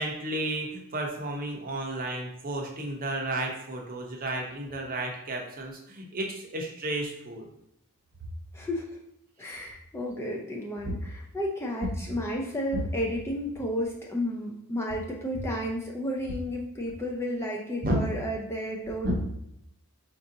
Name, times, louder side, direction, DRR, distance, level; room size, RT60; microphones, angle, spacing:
voice 1, 0.0-7.5 12.7-12.8 17.8-18.0 19.0-19.1, right 1 dB, 40° right, 1 dB, 0.6 m, -32 dB
voice 2, 8.5-8.9 9.4-19.1, equal, 10° left, -2 dB, 0.4 m, -32 dB
4.7 x 2.5 x 2.6 m, 0.76 s
head